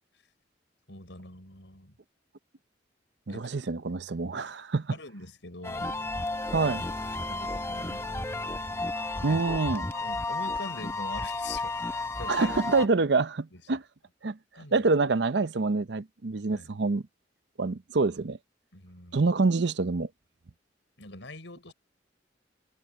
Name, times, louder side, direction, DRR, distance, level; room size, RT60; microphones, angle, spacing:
voice 1, 0.9-1.9 3.3-3.5 4.9-6.0 7.3-8.3 9.2-9.4 9.9-12.5 13.5-13.8 14.5-14.9 16.5-16.7 18.7-19.2 21.0-21.7, left 2 dB, 80° left, 5.2 m, -44 dB
voice 2, 3.3-5.0 6.5-6.8 9.2-9.8 12.3-13.8 14.2-14.4 14.7-17.0 17.6-18.4 19.1-20.1, right 3 dB, 65° right, 0.7 m, -26 dB
sound 1, 5.6-12.9, left 2 dB, 15° left, 0.9 m, -33 dB
head